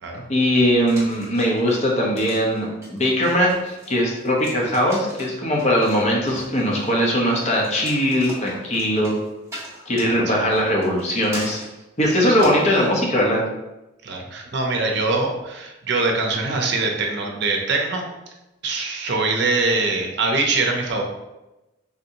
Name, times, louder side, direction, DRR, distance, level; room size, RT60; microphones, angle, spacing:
voice 1, 0.3-9.1 9.9-11.6 12.0-13.4, equal, 35° left, -2 dB, 0.7 m, -20 dB
sound 1, 0.9-12.9, right 1 dB, 15° right, 1.1 m, -40 dB
voice 2, 14.0-18.0 18.6-21.0, right 3 dB, 65° right, 1 dB, 0.6 m, -23 dB
3.5 x 2.7 x 2.7 m, 0.99 s
head